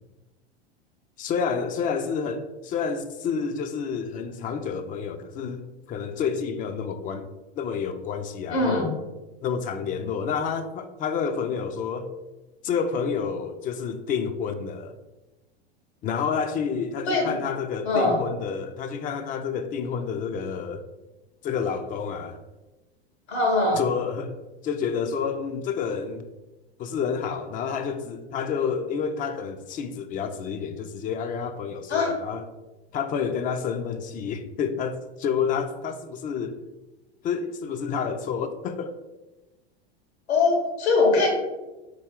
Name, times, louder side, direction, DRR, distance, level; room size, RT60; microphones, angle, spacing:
voice 1, 1.2-7.3 7.6-8.9 9.4-12.1 12.6-14.9 16.0-20.8 21.4-22.4 23.8-26.2 26.8-32.4 32.9-36.6 37.2-39.0, left 6 dB, 25° left, 0.3 m, -29 dB
voice 2, 8.5-8.9 17.1-17.4 17.8-18.2 23.3-23.8 31.9-32.2 40.3-41.3, left 3 dB, 85° left, 1.5 m, -22 dB
3.9 x 3.2 x 3.6 m
hypercardioid pair, 95°, 32 cm